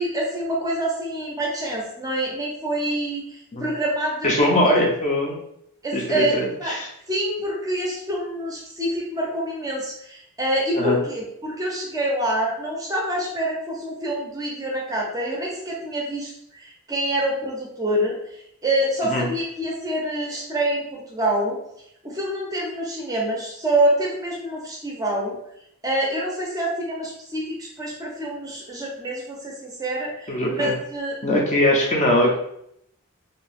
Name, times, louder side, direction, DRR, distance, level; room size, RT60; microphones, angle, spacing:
voice 1, 0.0-3.2 3.6-4.5 5.8-6.7 7.1-21.6 22.0-25.4 25.8-31.1, right 1 dB, 15° right, -2 dB, 0.5 m, -26 dB
voice 2, 4.2-5.4 5.9-6.9 10.8-11.0 19.1-19.3 30.3-30.7 31.2-32.3, left 1 dB, 35° left, -1 dB, 0.5 m, -21 dB
2.6 x 2.2 x 3.3 m, 0.74 s
head